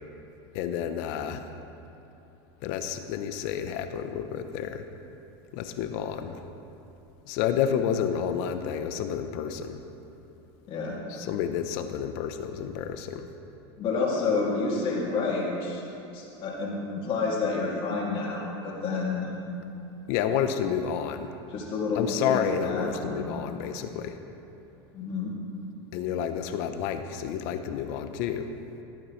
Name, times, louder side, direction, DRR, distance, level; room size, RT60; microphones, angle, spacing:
voice 1, 0.5-1.5 2.6-4.9 5.5-6.4 7.3-9.8 11.1-13.3 20.1-21.3 22.0-24.2 25.9-28.5, left 8 dB, 60° left, 8 dB, 0.8 m, -30 dB
voice 2, 10.7-11.0 13.8-15.8 16.1-19.3 21.5-23.2 24.9-25.3, left 4 dB, 40° left, -3 dB, 2.4 m, -29 dB
17.0 x 8.8 x 3.2 m, 3.0 s
supercardioid pair, 130°, 14 cm